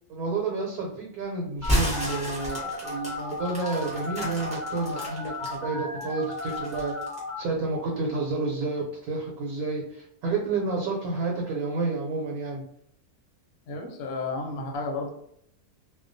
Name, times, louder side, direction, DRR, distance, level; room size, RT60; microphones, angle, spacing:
voice 1, 0.1-6.9 7.4-12.6, right 3 dB, 80° right, -2 dB, 1.1 m, -30 dB
Telephone, 1.6-7.4, left 2 dB, 40° left, 0.7 m, -35 dB
sound 1, 1.6-5.5 6.0-7.3, equal, 5° right, 0.5 m, -31 dB
voice 2, 13.7-15.1, left 3 dB, 75° left, 2 dB, 1.0 m, -32 dB
2.3 x 2.2 x 2.5 m, 0.70 s
omnidirectional pair, 1.6 m